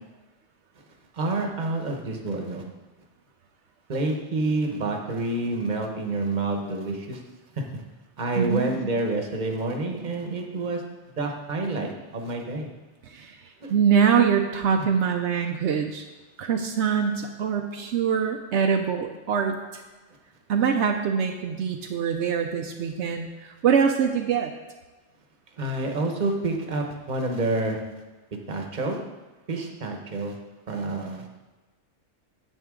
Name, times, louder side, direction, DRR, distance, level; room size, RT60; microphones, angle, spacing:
voice 1, 1.1-2.6 3.9-7.2 7.6-7.8 8.2-10.8 11.2-12.7 13.6-13.7 25.6-27.8 28.5-29.0 29.5-30.4 30.7-31.3, right 2 dB, 40° right, 2 dB, 1.2 m, -28 dB
voice 2, 8.4-8.9 13.0-13.4 13.7-16.0 16.4-19.8 20.5-24.5, right 7 dB, 75° right, 4 dB, 0.9 m, -24 dB
9.4 x 7.3 x 3.7 m, 1.2 s
omnidirectional pair, 1.2 m